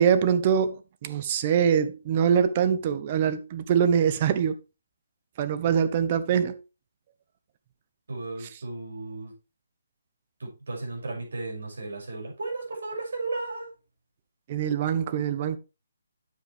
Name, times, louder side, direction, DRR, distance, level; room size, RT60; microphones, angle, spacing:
voice 1, 0.0-4.6 5.4-6.6 14.5-15.6, right 8 dB, 35° right, 0.9 m, -23 dB
voice 2, 8.1-9.3 10.4-13.7, right 3 dB, 70° right, 6.4 m, -34 dB
9.5 x 7.6 x 3.4 m
hypercardioid pair, 150°, 0 cm